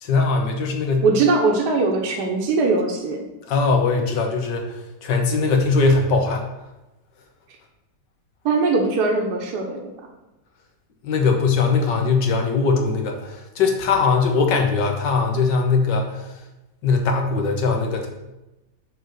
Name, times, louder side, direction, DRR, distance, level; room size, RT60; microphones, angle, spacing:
voice 1, 0.0-1.1 3.5-6.5 11.0-16.4 16.8-18.1, left 4 dB, 80° left, 3 dB, 1.8 m, -20 dB
voice 2, 1.0-3.3 8.4-9.8, right 3 dB, 65° right, 1 dB, 1.5 m, -20 dB
6.6 x 4.8 x 6.3 m, 1.0 s
omnidirectional pair, 1.9 m